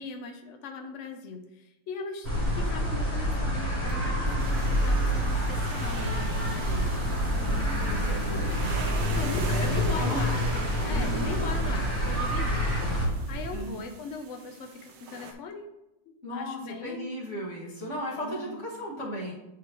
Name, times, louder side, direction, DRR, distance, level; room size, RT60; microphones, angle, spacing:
voice 1, 0.0-7.1 7.7-8.5 9.1-10.5 10.8-15.7 16.3-17.1 18.2-18.7, left 4 dB, 80° left, 4 dB, 0.6 m, -39 dB
sound 1, 2.2-13.1, left 1 dB, 15° left, 2.8 m, -28 dB
sound 2, 2.2-13.6, right 3 dB, 45° right, 1.0 m, -35 dB
sound 3, 4.4-15.3, right 4 dB, 65° right, 1.4 m, -42 dB
voice 2, 7.3-8.7 9.0-10.4 10.9-11.6 13.5-13.8 16.2-19.3, equal, 35° left, -6 dB, 2.3 m, -37 dB
11.0 x 4.6 x 3.0 m, 0.92 s
omnidirectional pair, 2.2 m